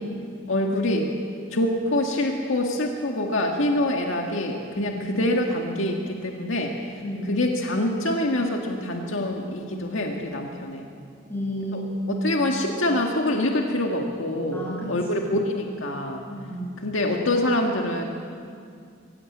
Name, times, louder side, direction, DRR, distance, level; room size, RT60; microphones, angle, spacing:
voice 1, 0.5-1.1 1.5-6.7 7.2-10.9 11.7-11.8 12.2-16.2 16.8-18.0, left 1 dB, 75° left, 1 dB, 1.9 m, -25 dB
voice 2, 7.0-7.4 11.3-12.2 14.5-14.9 16.3-16.7, equal, 10° left, -4 dB, 7.3 m, -31 dB
23.5 x 16.0 x 8.6 m, 2.3 s
head